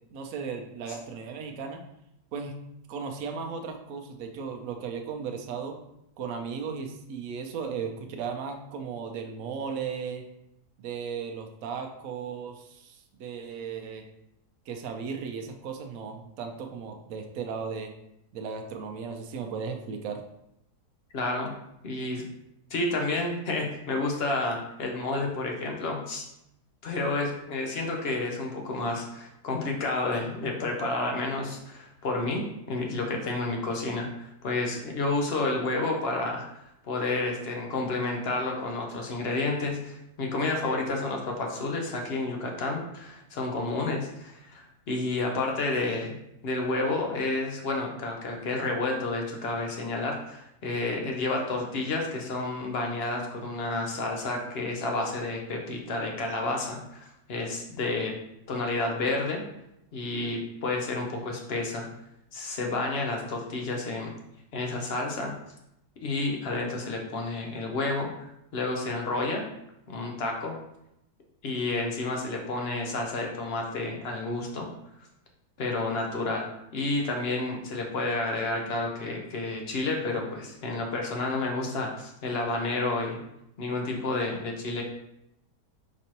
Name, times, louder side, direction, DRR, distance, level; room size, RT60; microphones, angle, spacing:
voice 1, 0.1-1.8 2.3-2.5 2.9-5.8 6.2-10.2 10.8-14.0 14.7-17.9 18.3-20.2, right 6 dB, 65° right, 4 dB, 0.9 m, -36 dB
voice 2, 21.1-21.5 21.8-22.2 22.7-26.2 26.8-32.4 32.7-36.4 36.8-46.1 46.4-58.1 58.5-59.4 59.9-61.9 62.3-64.1 64.5-65.3 66.0-69.4 69.9-70.5 71.4-74.7 75.6-76.5 76.7-83.2 83.6-84.8, left 2 dB, 55° left, 1 dB, 0.7 m, -30 dB
4.3 x 4.1 x 2.9 m, 0.82 s
omnidirectional pair, 1.7 m